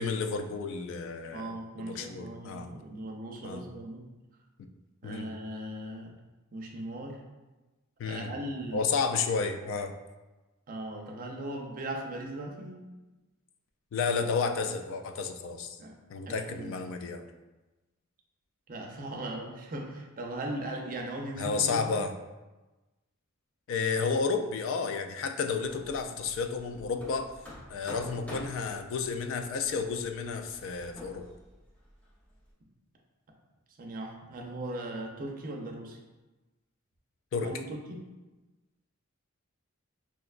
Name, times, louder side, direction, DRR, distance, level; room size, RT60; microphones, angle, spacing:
voice 1, 0.0-2.7 3.4-3.6 5.0-5.3 8.0-8.3 8.7-9.9 13.9-15.8 16.1-17.2 21.4-22.1 23.7-27.3 27.7-31.2 37.3-37.5, left 5 dB, 65° left, 7 dB, 0.3 m, -31 dB
voice 2, 1.3-4.1 5.0-6.1 6.5-7.2 8.0-8.9 10.7-12.8 15.8-16.0 16.3-16.8 18.7-21.9 33.8-36.0 37.4-38.0, right 1 dB, 40° right, 1 dB, 0.5 m, -38 dB
Hammer, 25.6-32.5, equal, 5° left, 0.6 m, -49 dB
4.7 x 2.1 x 2.4 m, 1.1 s
head